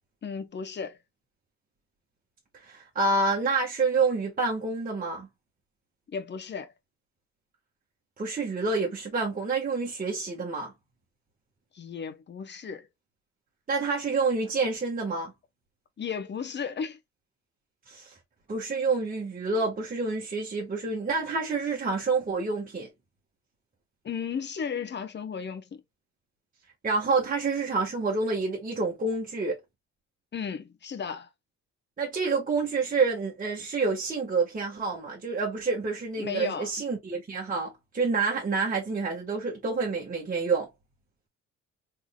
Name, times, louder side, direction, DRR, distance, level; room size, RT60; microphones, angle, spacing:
voice 1, 0.2-1.0 6.1-6.7 11.7-12.9 16.0-17.0 24.0-25.8 30.3-31.3 36.2-36.7, left 6 dB, 35° left, 0.8 m, -34 dB
voice 2, 2.6-5.3 8.2-10.7 13.7-15.3 17.9-18.1 18.5-22.9 26.8-29.6 32.0-40.7, right 4 dB, 30° right, 1.3 m, -28 dB
3.6 x 3.3 x 2.3 m
cardioid pair, 90°, 30 cm